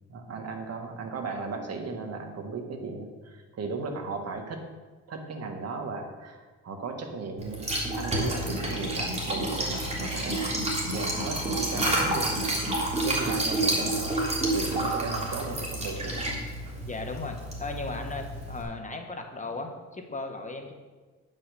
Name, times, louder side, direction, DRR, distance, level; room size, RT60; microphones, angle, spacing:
voice 1, 0.1-4.7 5.1-7.7 8.0-16.4, right 4 dB, 55° right, 4 dB, 1.8 m, -36 dB
Liquid, 7.4-18.6, right 1 dB, 20° right, 3.2 m, -29 dB
voice 2, 16.8-20.7, left 3 dB, 25° left, 4 dB, 1.4 m, -36 dB
9.5 x 5.7 x 6.9 m, 1.3 s
cardioid pair, 90°, 30 cm